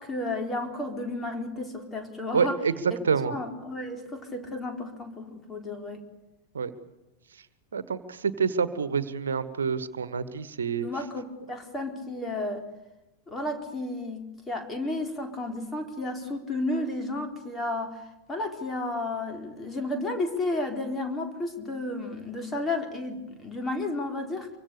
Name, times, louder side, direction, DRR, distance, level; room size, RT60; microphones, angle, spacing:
voice 1, 0.0-2.6 3.3-6.0 10.8-12.7 13.3-24.5, left 2 dB, 15° left, 4 dB, 4.2 m, -32 dB
voice 2, 2.3-2.7 3.0-3.3 6.5-6.7 7.7-10.9, right 6 dB, 70° right, 13 dB, 1.5 m, -27 dB
25.5 x 24.0 x 6.8 m, 0.99 s
figure-of-eight pair, 90°, 0 cm